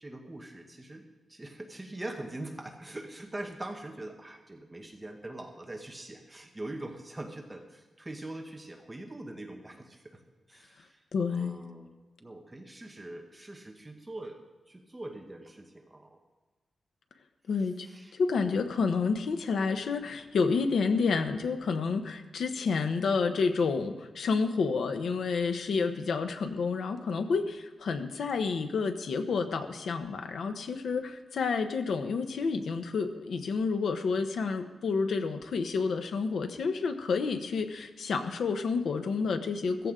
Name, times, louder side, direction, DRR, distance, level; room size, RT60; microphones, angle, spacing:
voice 1, 0.0-10.2 10.5-11.9 12.2-16.2 17.6-18.2, right 1 dB, 15° right, 3 dB, 1.0 m, -43 dB
voice 2, 11.1-11.6 17.5-17.9 18.1-39.9, left 4 dB, 85° left, 7 dB, 1.0 m, -29 dB
16.0 x 15.0 x 3.8 m, 1.3 s
wide cardioid pair, 160°, 0 cm